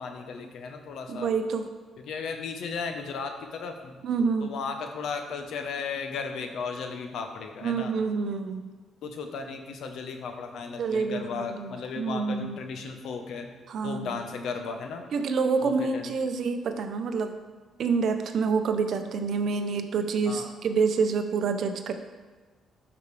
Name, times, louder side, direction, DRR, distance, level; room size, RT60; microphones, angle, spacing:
voice 1, 0.0-1.3 2.0-4.0 4.4-7.9 9.0-13.5 13.8-15.0 15.6-16.1 20.3-20.5, left 5 dB, 75° left, 5 dB, 0.9 m, -35 dB
voice 2, 1.1-1.7 4.0-4.5 7.6-8.6 10.8-12.6 13.7-14.2 15.1-17.3 17.8-21.9, right 5 dB, 65° right, 7 dB, 0.7 m, -27 dB
12.0 x 5.1 x 3.3 m, 1.4 s
cardioid pair, 90°, 0 cm